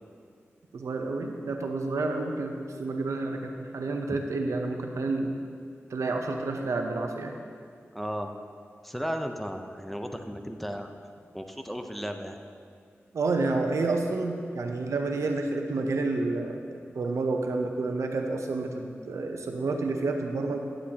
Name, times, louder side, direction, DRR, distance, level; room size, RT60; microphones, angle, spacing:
voice 1, 0.7-5.4 5.9-7.4 13.1-20.6, right 3 dB, 85° right, 4 dB, 0.8 m, -29 dB
voice 2, 7.9-8.3 8.8-10.9 11.3-12.4, equal, 5° left, 5 dB, 0.8 m, -34 dB
11.0 x 10.0 x 2.9 m, 2.3 s
cardioid pair, 45°, 5 cm